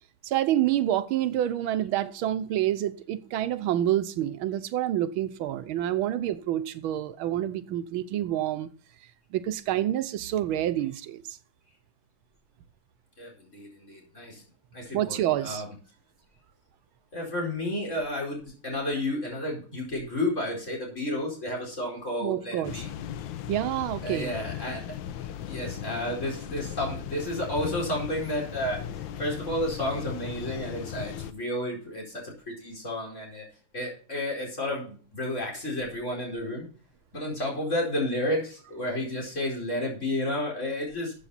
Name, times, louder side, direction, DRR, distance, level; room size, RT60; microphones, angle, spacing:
voice 1, 0.2-8.7 9.3-11.4 14.9-15.6 22.2-22.8 23.5-24.4, right 12 dB, 90° right, 1.6 m, -28 dB
voice 2, 13.2-14.4 14.7-15.7 17.1-22.9 24.0-24.8 25.5-28.8 29.2-33.4 33.7-36.7 37.1-41.1, left 1 dB, 35° left, 4.9 m, -31 dB
sound 1, 22.6-31.3, left 10 dB, 75° left, 1.4 m, -37 dB
13.0 x 8.0 x 4.1 m
omnidirectional pair, 2.2 m